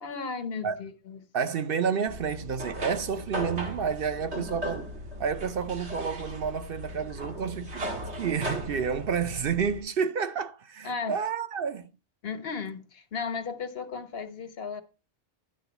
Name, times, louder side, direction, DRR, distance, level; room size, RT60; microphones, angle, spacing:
voice 1, 0.0-1.2 10.8-11.2 12.2-14.8, left 5 dB, 65° left, 1.3 m, -35 dB
voice 2, 1.3-4.9 5.2-7.9 8.1-11.9, right 6 dB, 60° right, 0.8 m, -30 dB
sound 1, 2.1-9.8, equal, 90° right, 2.0 m, -37 dB
11.5 x 3.8 x 7.0 m
omnidirectional pair, 1.1 m